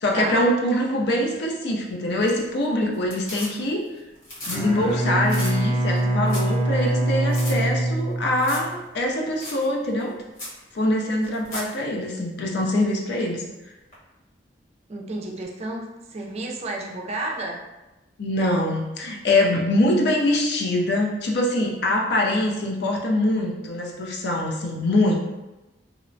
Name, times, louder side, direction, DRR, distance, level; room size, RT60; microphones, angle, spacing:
voice 1, 0.0-3.8 4.4-10.1 10.7-13.4 18.2-25.1, left 1 dB, 65° left, 0 dB, 0.5 m, -23 dB
sound 1, 2.1-2.6 2.9-3.9 4.2-4.6 4.9-5.0 5.2-5.5 6.0-6.1 6.3-6.6 6.9-7.0 7.3-7.5 8.4-8.7 9.0-9.1 9.4-9.6 10.0-10.1 10.4-10.6 11.2-11.7 13.9-14.0, left 1 dB, 45° left, 1.1 m, -36 dB
Bowed string instrument, 4.4-8.8, right 1 dB, ahead, 0.6 m, -24 dB
voice 2, 14.9-17.6, right 2 dB, 35° right, 0 dB, 0.3 m, -31 dB
2.8 x 2.1 x 2.5 m, 1.0 s
head